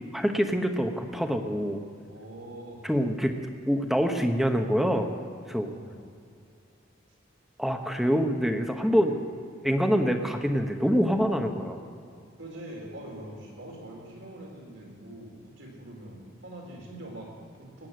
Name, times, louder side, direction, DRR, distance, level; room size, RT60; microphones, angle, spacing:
voice 1, 0.1-1.8 2.8-3.3 3.6-5.1 5.5-5.7 7.6-9.2 9.6-11.8, equal, ahead, 5 dB, 1.0 m, -25 dB
voice 2, 2.1-2.9 5.7-6.0 11.0-11.1 12.4-17.9, right 1 dB, 65° right, -1 dB, 4.4 m, -43 dB
17.5 x 9.9 x 7.6 m, 2.5 s
head